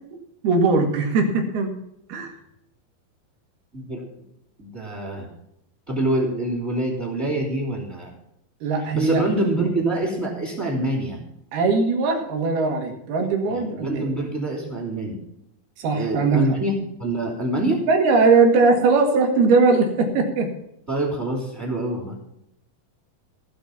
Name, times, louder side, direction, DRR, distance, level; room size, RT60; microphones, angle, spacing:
voice 1, 0.4-1.7 2.1-2.3 8.6-9.2 11.5-14.1 15.8-16.4 17.9-20.5, right 4 dB, 90° right, 3 dB, 4.1 m, -20 dB
voice 2, 3.7-4.0 4.6-5.3 5.9-8.1 8.9-11.2 13.5-15.1 15.9-17.8 20.9-22.2, right 1 dB, 15° right, 1 dB, 3.2 m, -25 dB
17.5 x 5.9 x 7.2 m, 0.79 s
omnidirectional pair, 4.3 m